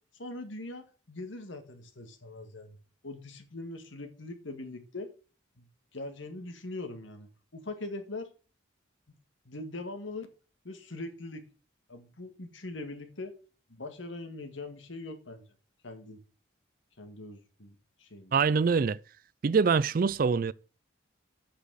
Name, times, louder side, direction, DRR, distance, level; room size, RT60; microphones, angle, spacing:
voice 1, 0.2-2.8 3.0-5.1 5.6-5.7 5.9-8.3 9.5-10.3 10.6-11.4 11.9-13.3 13.7-15.4 15.8-16.2 17.0-18.4, left 2 dB, 75° left, 1.8 m, -41 dB
voice 2, 18.3-19.0 19.4-20.5, right 5 dB, 45° right, 0.4 m, -24 dB
8.4 x 5.9 x 6.3 m
head